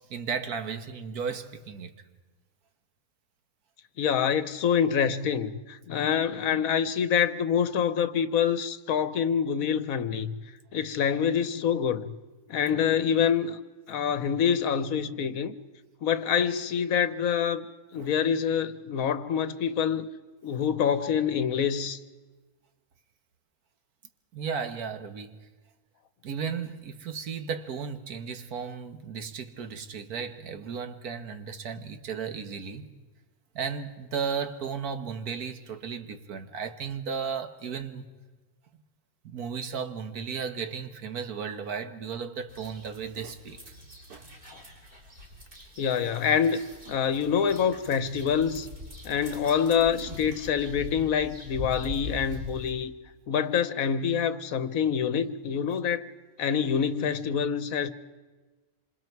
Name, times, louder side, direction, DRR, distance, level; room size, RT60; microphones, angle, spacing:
voice 1, 0.1-1.9 17.0-17.1 18.0-18.1 24.3-25.4 26.2-32.9 33.6-38.0 39.2-43.7 44.1-44.3, right 6 dB, 85° right, 1.7 m, -35 dB
voice 2, 4.0-10.4 10.7-12.1 12.5-13.6 13.9-15.5 16.0-17.6 17.9-20.1 20.4-22.0 44.5-44.6 45.8-46.6 46.9-48.7 49.0-52.9 53.3-56.1 56.4-57.9, left 7 dB, 70° left, 1.3 m, -26 dB
sound 1, 42.5-52.7, left 1 dB, 35° right, 3.9 m, -43 dB
27.0 x 26.5 x 4.6 m
omnidirectional pair, 1.5 m